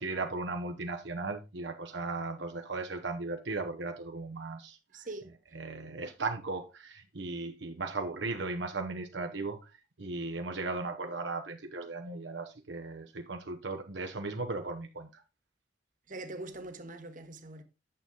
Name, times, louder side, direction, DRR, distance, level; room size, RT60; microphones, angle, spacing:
voice 1, 0.0-4.8 5.6-9.6 10.0-15.2, right 3 dB, 65° right, 0.9 m, -36 dB
voice 2, 4.9-5.7 16.1-17.6, right 2 dB, 45° right, 1.2 m, -43 dB
8.8 x 7.1 x 3.8 m
head